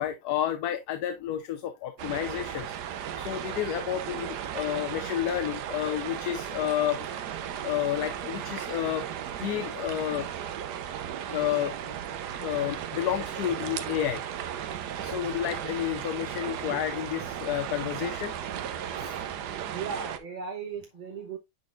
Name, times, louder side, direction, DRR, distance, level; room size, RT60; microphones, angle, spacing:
voice 1, 0.0-2.7 3.2-7.0 7.6-9.0 9.4-10.3 11.3-11.7 12.4-14.2 15.0-18.3 19.0-19.2, left 11 dB, 75° left, 1.1 m, -30 dB
sound 1, 2.0-20.2, right 9 dB, 85° right, 1.3 m, -35 dB
voice 2, 19.7-21.4, right 6 dB, 35° right, 0.8 m, -36 dB
9.9 x 3.9 x 2.4 m
omnidirectional pair, 1.7 m